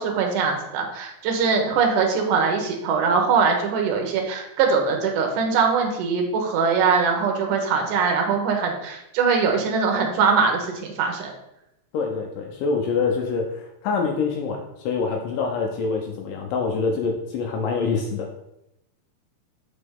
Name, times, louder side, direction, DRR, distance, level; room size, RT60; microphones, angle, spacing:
voice 1, 0.0-11.3, right 5 dB, 80° right, 2 dB, 1.9 m, -22 dB
voice 2, 11.9-18.3, left 4 dB, 85° left, 1 dB, 1.9 m, -25 dB
6.7 x 5.1 x 3.6 m, 0.86 s
omnidirectional pair, 4.8 m